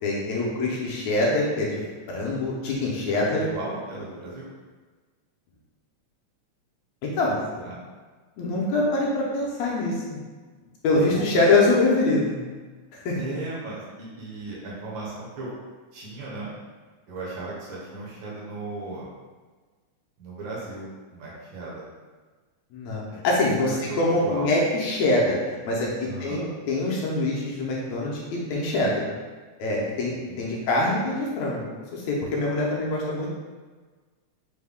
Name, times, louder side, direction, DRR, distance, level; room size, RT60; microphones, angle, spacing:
voice 1, 0.0-1.8 2.1-3.4 7.0-7.4 8.4-10.2 10.8-12.4 13.1-13.2 22.7-29.0 29.6-33.3, left 2 dB, 75° left, -4 dB, 1.9 m, -24 dB
voice 2, 3.0-4.4 7.5-7.8 10.9-11.2 11.5-11.6 13.2-15.5 15.9-16.5 17.1-19.1 20.2-21.9 23.1-23.3 23.6-24.5 26.0-26.4 29.0-29.1 30.3-30.6, right 3 dB, 65° right, -6 dB, 1.2 m, -36 dB
5.4 x 2.2 x 3.4 m, 1.4 s
omnidirectional pair, 3.4 m